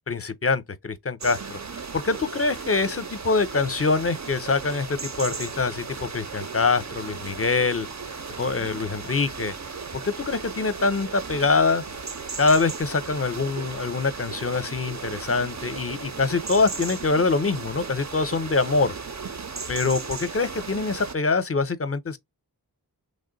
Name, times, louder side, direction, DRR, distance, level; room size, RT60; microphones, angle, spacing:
voice 1, 0.1-7.9 8.4-9.5 10.0-11.8 12.4-18.9 19.7-22.2, left 4 dB, 35° left, 0.6 m, -24 dB
sound 1, 1.2-21.2, right 5 dB, 45° right, 0.7 m, -36 dB
3.3 x 2.1 x 3.9 m
wide cardioid pair, 45°, 38 cm